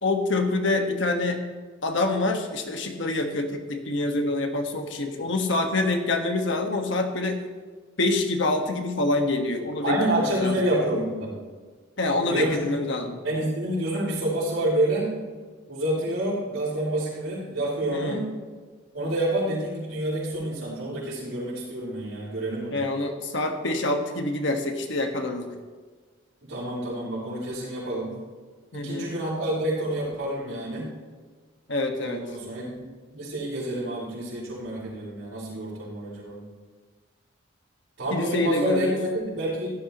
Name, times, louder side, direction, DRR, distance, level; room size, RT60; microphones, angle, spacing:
voice 1, 0.0-1.4 1.8-7.4 8.0-10.6 12.0-13.2 17.9-18.2 22.7-25.5 28.7-29.1 31.7-32.2 38.1-39.0, left 2 dB, 65° left, 4 dB, 1.5 m, -26 dB
voice 2, 9.8-11.3 12.3-12.8 13.2-15.1 15.7-18.2 18.9-22.8 26.4-28.1 28.7-30.9 32.0-32.9 33.1-36.4 38.0-39.7, right 1 dB, 85° right, -9 dB, 4.6 m, -28 dB
16.0 x 13.0 x 3.0 m, 1.5 s
head